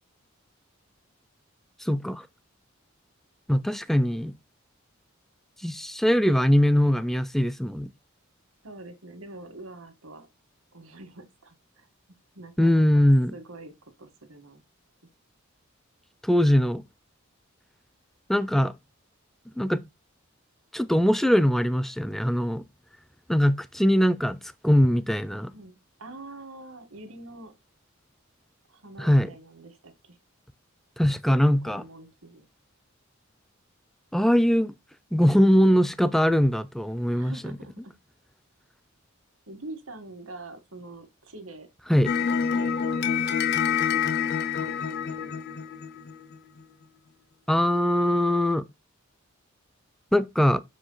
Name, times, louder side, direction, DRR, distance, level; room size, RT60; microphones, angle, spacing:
voice 1, 1.8-2.2 3.5-4.3 5.6-7.9 12.6-13.3 16.2-16.8 18.3-18.7 19.6-19.8 20.7-22.6 23.3-25.5 29.0-29.3 31.0-31.8 34.1-34.7 35.1-37.3 41.9-42.1 47.5-48.6 50.1-50.6, equal, ahead, 0.4 m, -21 dB
voice 2, 8.6-10.3 10.7-11.9 12.3-13.0 13.3-13.7 14.0-14.6 25.5-27.5 28.7-30.2 31.6-32.5 37.1-37.9 39.5-41.7 42.2-45.4, right 2 dB, 85° right, 1.6 m, -45 dB
sound 1, 42.0-46.4, left 7 dB, 50° left, 0.6 m, -27 dB
6.1 x 5.0 x 3.9 m
head